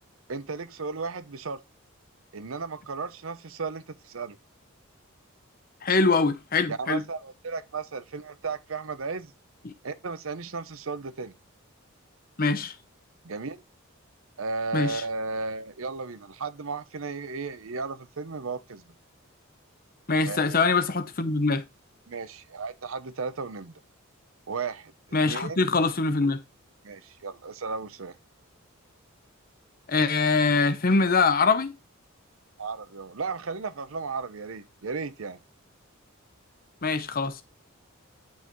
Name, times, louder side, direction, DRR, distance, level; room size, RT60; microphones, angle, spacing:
voice 1, 0.3-1.6 2.3-4.4 6.7-9.3 9.8-11.3 13.2-13.6 14.4-18.9 20.3-20.6 22.1-23.7 24.5-24.9 25.2-25.6 26.8-28.2 32.6-35.4, right 4 dB, 70° right, 0.8 m, -34 dB
voice 2, 5.8-7.0 9.6-9.7 12.4-12.7 14.7-15.0 20.1-21.6 25.1-26.4 29.9-31.7 36.8-37.4, left 4 dB, 45° left, 0.9 m, -23 dB
9.9 x 5.7 x 3.1 m
head